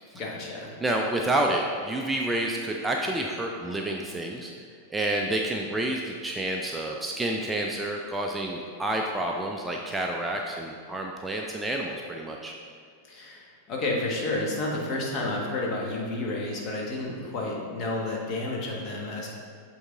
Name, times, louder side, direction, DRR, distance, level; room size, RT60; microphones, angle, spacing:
voice 1, 0.1-0.7 13.1-19.3, left 2 dB, 35° left, -2 dB, 1.3 m, -31 dB
voice 2, 0.8-4.5 4.9-12.5, right 1 dB, 10° right, 0 dB, 0.4 m, -29 dB
7.9 x 3.5 x 3.7 m, 2.3 s
figure-of-eight pair, 90°, 0 cm